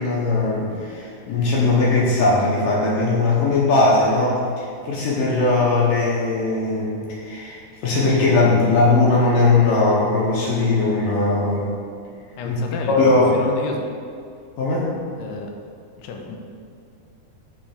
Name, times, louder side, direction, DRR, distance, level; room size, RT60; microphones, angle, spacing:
voice 1, 0.0-11.7 12.4-12.6 13.0-13.3 14.6-14.9, left 3 dB, 70° left, -5 dB, 2.2 m, -19 dB
voice 2, 12.4-13.8 15.2-15.5 16.0-16.4, left 3 dB, 85° left, 2 dB, 2.8 m, -31 dB
8.7 x 3.3 x 6.5 m, 2.3 s
omnidirectional pair, 4.7 m